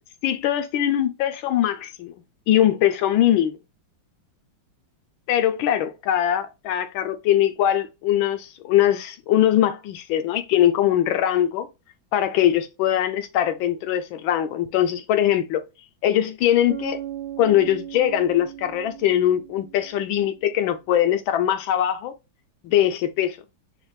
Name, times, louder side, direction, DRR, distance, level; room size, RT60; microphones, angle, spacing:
voice 1, 0.2-2.1 2.5-3.6 5.3-11.7 12.1-15.6 16.0-17.0 17.4-22.1 22.6-23.4, left 11 dB, 80° left, 1.4 m, -21 dB
Bass guitar, 16.7-20.5, right 12 dB, 50° right, 1.3 m, -37 dB
5.9 x 2.5 x 3.2 m
omnidirectional pair, 2.1 m